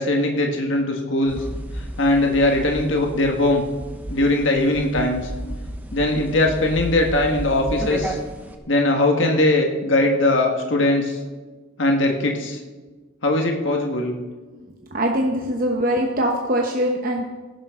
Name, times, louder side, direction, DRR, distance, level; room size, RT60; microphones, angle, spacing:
voice 1, 0.0-1.4 2.0-3.6 4.1-5.3 5.9-8.2 8.7-11.2 11.8-12.6 13.2-14.1, left 2 dB, 65° left, 2 dB, 1.6 m, -20 dB
sound 1, 1.3-8.6, right 1 dB, 10° right, 0.9 m, -33 dB
voice 2, 14.9-17.3, equal, 45° right, 1 dB, 1.0 m, -22 dB
18.0 x 11.0 x 3.7 m, 1.3 s
head